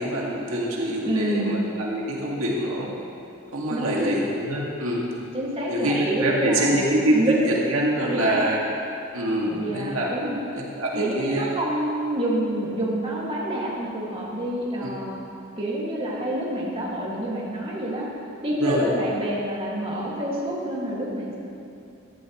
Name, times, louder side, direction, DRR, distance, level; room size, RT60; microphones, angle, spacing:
voice 1, 0.0-2.9 3.5-5.0 5.7-8.6 9.1-10.2 10.5-11.5 14.8-14.9 18.6-18.9, right 1 dB, 90° right, -3 dB, 2.1 m, -25 dB
voice 2, 1.0-1.6 3.7-4.2 5.3-6.9 7.1-7.4 8.1-8.5 9.4-10.4 10.9-15.2 15.6-18.1 18.4-21.4, right 1 dB, 30° right, -5 dB, 2.2 m, -27 dB
15.0 x 13.0 x 3.2 m, 2.7 s
head